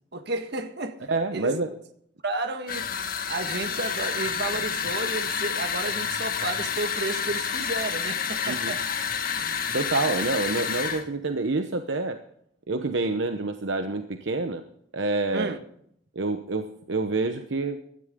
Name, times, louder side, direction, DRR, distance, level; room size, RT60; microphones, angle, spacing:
voice 1, 0.1-1.1 1.3-1.5 2.2-2.9 3.3-9.0 15.3-15.6, right 3 dB, 65° right, 1.6 m, -32 dB
voice 2, 1.1-1.7 8.5-8.7 9.7-12.2 12.7-14.6 14.9-15.5 16.1-17.8, right 3 dB, 80° right, 1.0 m, -27 dB
sound 1, 2.7-11.0, left 7 dB, 50° left, 1.8 m, -29 dB
16.5 x 13.5 x 3.7 m
head